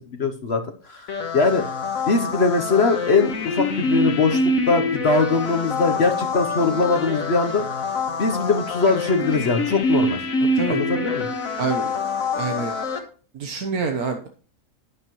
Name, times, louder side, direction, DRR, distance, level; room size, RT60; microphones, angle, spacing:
voice 1, 0.1-1.6 2.1-7.6 8.2-10.2 10.7-11.3, left 4 dB, 50° left, 6 dB, 1.1 m, -21 dB
sound 1, 1.1-13.0, left 2 dB, 65° left, 1.7 m, -25 dB
voice 2, 10.4-10.8 11.6-12.0 12.3-12.7 13.3-14.3, right 4 dB, 80° right, 4 dB, 1.5 m, -27 dB
11.0 x 9.9 x 3.0 m, 0.38 s
omnidirectional pair, 1.5 m